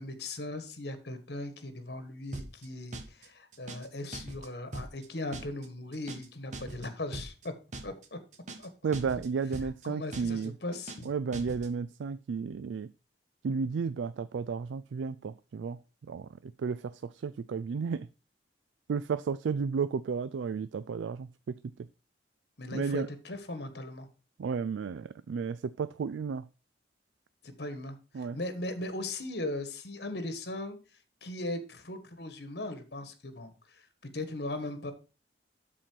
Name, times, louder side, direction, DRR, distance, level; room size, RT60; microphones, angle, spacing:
voice 1, 0.0-7.5 7.8-8.2 8.6-8.9 9.8-11.1 22.6-24.1 27.4-30.8 31.2-33.9 34.1-34.9, left 2 dB, 60° left, 1.4 m, -38 dB
sound 1, 2.3-2.7 2.9-3.3 3.5-3.9 4.1-4.5 4.7-5.1 5.3-5.7 5.9-6.3 6.5-6.9 7.1-7.5 7.7-8.1 8.3-8.7 8.9-9.3 9.5-9.9 10.1-10.5 10.7-11.1 11.3-11.7, right 2 dB, 40° right, 1.1 m, -41 dB
voice 2, 8.8-10.5 11.0-12.9 13.4-18.1 18.9-21.9 22.7-23.1 24.4-26.5 28.1-28.4, right 5 dB, 85° right, 0.4 m, -33 dB
12.5 x 4.4 x 4.5 m
head